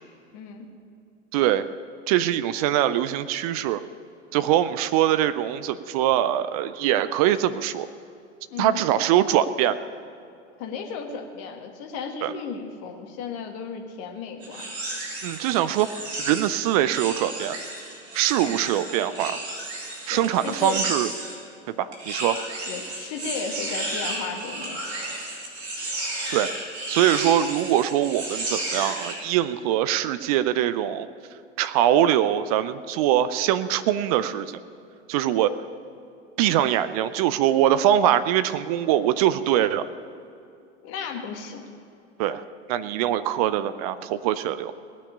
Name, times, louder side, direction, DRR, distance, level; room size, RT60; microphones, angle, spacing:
voice 1, 0.3-0.7 8.5-8.8 10.6-14.7 18.5-18.6 20.1-20.8 22.7-24.8 40.8-41.7, left 5 dB, 40° left, 4 dB, 1.8 m, -34 dB
voice 2, 1.3-1.7 2.1-3.8 4.3-7.9 8.6-9.8 12.2-12.3 15.2-15.9 16.2-17.6 18.1-19.4 20.1-21.1 21.7-22.4 26.3-26.5 26.9-31.1 31.6-34.6 35.1-35.6 36.4-39.8 42.2-42.4 42.7-44.7, right 11 dB, 30° right, 14 dB, 0.4 m, -23 dB
sound 1, 14.4-21.4 21.9-29.2, right 2 dB, 60° right, 4.4 m, -33 dB
18.5 x 6.2 x 9.9 m, 2.6 s
figure-of-eight pair, 95°, 37 cm